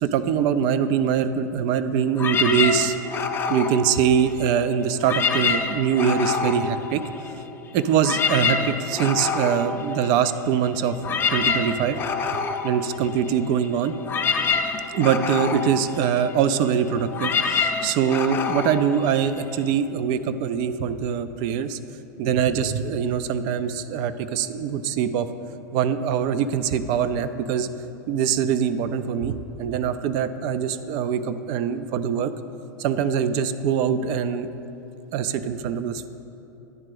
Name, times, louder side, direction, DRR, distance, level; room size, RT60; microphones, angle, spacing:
voice 1, 0.0-3.0 3.5-7.0 7.7-11.0 11.3-12.0 12.6-14.0 15.0-21.8 22.2-25.3 25.7-27.7 28.1-32.3 32.8-34.5 35.1-36.1, right 8 dB, 45° right, 12 dB, 0.4 m, -23 dB
sound 1, 2.2-4.6 4.9-7.5 7.8-19.7, left 5 dB, 20° left, 0.5 m, -27 dB
10.0 x 3.7 x 6.5 m, 2.9 s
hypercardioid pair, 90°, 10 cm